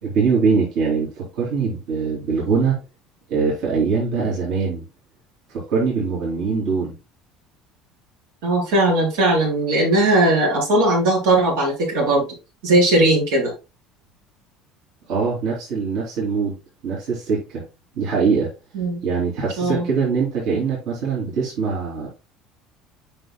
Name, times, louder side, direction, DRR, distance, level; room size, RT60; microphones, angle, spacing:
voice 1, 0.0-2.8 3.3-4.8 5.5-6.9 15.1-16.6 16.8-17.6 18.0-18.5 19.0-22.1, right 5 dB, 65° right, -5 dB, 3.2 m, -22 dB
voice 2, 8.4-12.3 12.6-13.5 18.7-19.0 19.6-19.9, right 1 dB, 85° right, -2 dB, 4.0 m, -18 dB
7.8 x 5.8 x 2.3 m, 0.28 s
cardioid pair, 135°, 0 cm